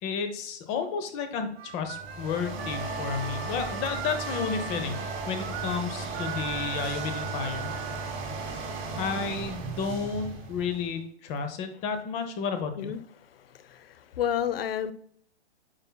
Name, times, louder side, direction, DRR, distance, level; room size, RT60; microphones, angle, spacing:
voice 1, 0.0-7.7 9.0-12.9, left 5 dB, 20° left, 0.7 m, -32 dB
Harmonica, 1.6-8.1, right 8 dB, 65° right, 1.1 m, -39 dB
sound 1, 1.8-11.0, right 3 dB, 20° right, 1.1 m, -36 dB
voice 2, 13.4-14.9, left 9 dB, 60° left, 0.7 m, -31 dB
8.7 x 5.4 x 2.2 m
hypercardioid pair, 145°, 34 cm